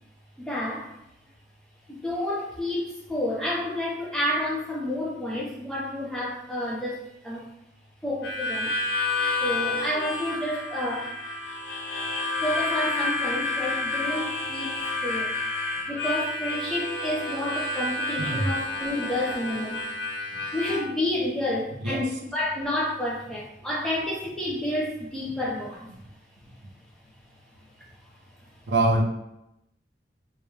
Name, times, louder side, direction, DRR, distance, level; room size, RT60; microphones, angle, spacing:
voice 1, 0.4-1.0 1.9-7.5 8.0-8.7 9.4-11.1 12.4-15.3 15.9-19.9 20.5-25.9 27.8-27.9, left 1 dB, 5° left, -5 dB, 0.5 m, -30 dB
Harmonica, 8.2-20.8, left 2 dB, 75° left, 0.5 m, -30 dB
voice 2, 18.2-18.5 21.8-22.0 28.7-29.0, right 2 dB, 75° right, 0 dB, 0.5 m, -23 dB
2.3 x 2.0 x 3.1 m, 0.82 s
head